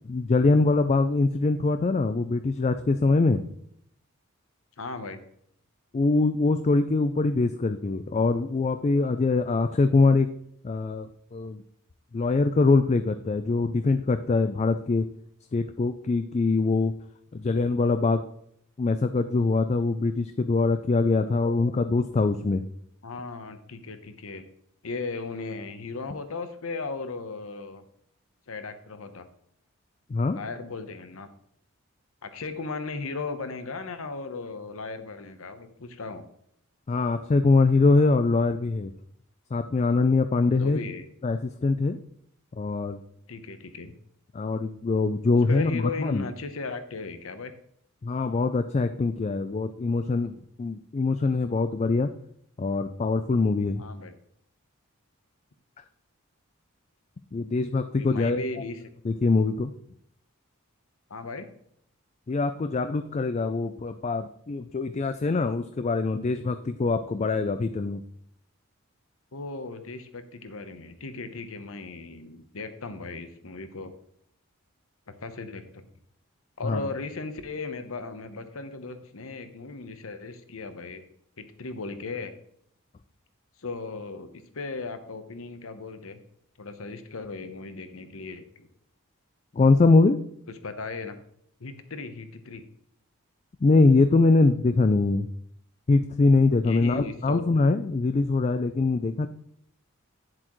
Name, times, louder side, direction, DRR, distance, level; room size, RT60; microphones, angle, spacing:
voice 1, 0.1-3.4 5.9-10.3 10.6-11.6 12.1-15.1 15.5-16.9 17.3-18.2 18.8-22.6 30.1-30.4 36.9-38.9 39.5-40.8 41.2-42.0 42.6-43.0 44.3-46.2 48.0-52.1 52.6-53.8 57.3-58.4 59.0-59.7 62.3-68.0 76.7-76.8 89.5-90.2 93.6-95.3 95.9-99.3, left 3 dB, 30° left, 10 dB, 0.3 m, -23 dB
voice 2, 4.8-5.2 23.0-24.5 24.8-27.8 28.5-29.3 30.3-31.3 32.2-36.2 40.6-41.1 43.3-43.9 45.5-47.5 53.8-54.1 58.0-58.8 61.1-61.5 69.3-73.9 75.2-75.8 76.6-81.0 81.4-82.3 83.6-86.2 86.6-88.7 90.6-91.1 91.6-92.6 96.6-97.4, left 3 dB, 75° left, 9 dB, 0.9 m, -36 dB
9.9 x 7.5 x 3.1 m, 0.69 s
head